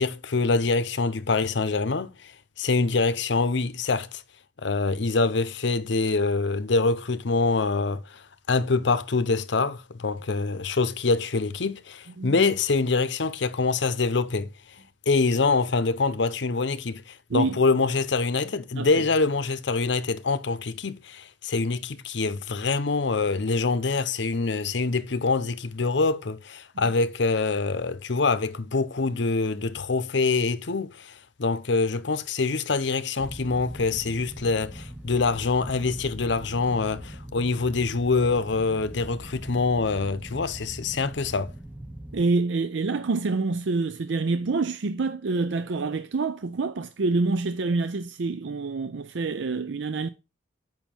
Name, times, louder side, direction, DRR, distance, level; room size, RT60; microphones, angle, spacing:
voice 1, 0.0-2.3 2.6-4.2 4.6-14.5 15.1-41.5, left 3 dB, 70° left, 0.7 m, -25 dB
sound 1, 33.2-42.2, right 1 dB, 5° right, 0.7 m, -41 dB
voice 2, 42.1-50.1, right 3 dB, 70° right, 0.5 m, -27 dB
7.3 x 5.6 x 4.4 m
head